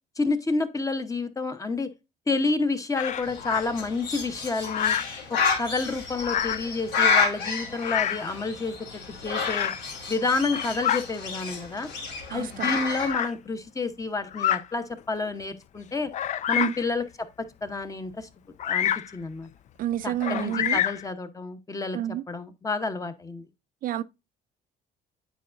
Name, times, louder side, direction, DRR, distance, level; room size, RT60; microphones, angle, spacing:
voice 1, 0.2-1.9 2.3-5.0 5.3-8.7 9.2-9.7 10.1-11.9 12.3-16.1 16.5-18.3 18.6-19.5 20.0-22.0 22.3-23.5, left 3 dB, 20° left, 0.9 m, -29 dB
Bird vocalization bird call bird song, 2.9-3.6 4.6-5.2 6.2-6.7 7.8-8.3 9.4-9.8 10.4-11.0 11.9-12.0 13.0-13.3 14.3-14.7 15.3-15.4 16.1-16.9 18.6-19.1 20.2-21.1, left 10 dB, 45° left, 0.4 m, -27 dB
Bird, 3.2-13.1, left 5 dB, 85° left, 2.7 m, -30 dB
voice 2, 12.3-12.8 16.5-16.7 19.8-20.8 21.9-22.2 23.8-24.0, right 12 dB, 55° right, 0.4 m, -29 dB
9.2 x 4.8 x 2.5 m
cardioid pair, 110°, 17 cm